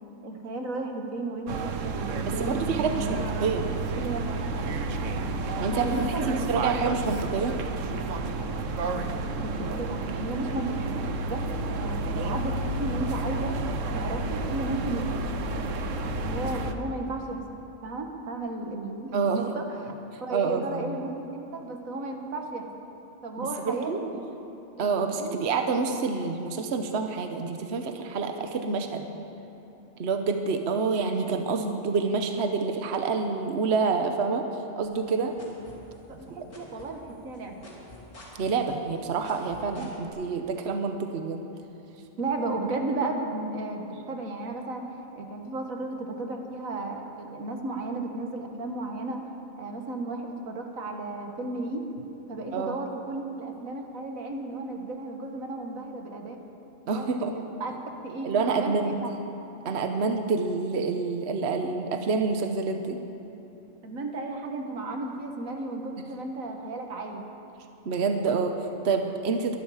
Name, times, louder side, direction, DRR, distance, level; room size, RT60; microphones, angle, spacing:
voice 1, 0.2-3.2 4.0-4.5 5.7-6.3 8.9-11.4 11.7-13.6 13.9-19.9 20.2-22.7 23.2-24.3 24.7-25.5 26.1-26.2 36.1-37.6 42.2-49.2 49.6-51.8 52.3-56.4 56.9-57.1 57.3-57.7 58.0-59.1 63.8-67.2, right 2 dB, 90° right, 3 dB, 1.8 m, -34 dB
sound 1, 1.5-16.7, right 2 dB, 70° right, 1.2 m, -31 dB
voice 2, 2.2-3.7 5.6-7.6 19.1-19.5 20.3-21.0 23.4-24.0 24.8-29.2 30.0-34.5 34.8-35.4 38.4-41.5 52.5-52.8 56.9-57.3 58.2-59.0 59.6-63.0 67.8-69.6, right 4 dB, 55° right, 5 dB, 1.1 m, -28 dB
sound 2, 34.8-36.2 36.5-40.1, left 1 dB, 70° left, 3.2 m, -47 dB
23.0 x 12.0 x 4.9 m, 2.9 s
omnidirectional pair, 1.4 m